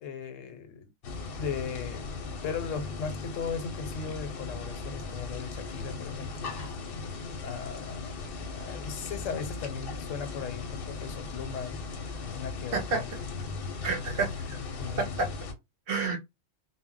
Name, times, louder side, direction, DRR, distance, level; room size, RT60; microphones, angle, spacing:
voice 1, 0.0-0.9 1.4-2.1 2.4-6.5 7.4-11.8 12.2-13.1 14.8-15.2, left 6 dB, 80° left, 1.0 m, -37 dB
sound 1, 1.0-15.5, left 4 dB, 55° left, 0.8 m, -38 dB
voice 2, 12.7-13.0 13.8-14.6 15.0-15.3 15.9-16.2, right 4 dB, 65° right, 0.6 m, -29 dB
2.1 x 2.0 x 3.7 m
omnidirectional pair, 1.3 m